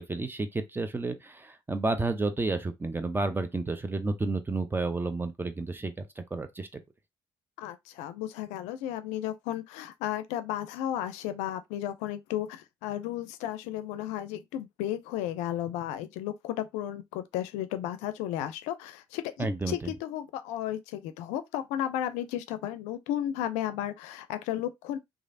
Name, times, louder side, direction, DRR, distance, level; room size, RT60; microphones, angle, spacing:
voice 1, 0.0-6.8 19.4-19.9, right 3 dB, 20° right, 0.7 m, -31 dB
voice 2, 7.6-25.0, left 12 dB, 80° left, 0.4 m, -34 dB
3.1 x 2.4 x 2.6 m
hypercardioid pair, 60°, 12 cm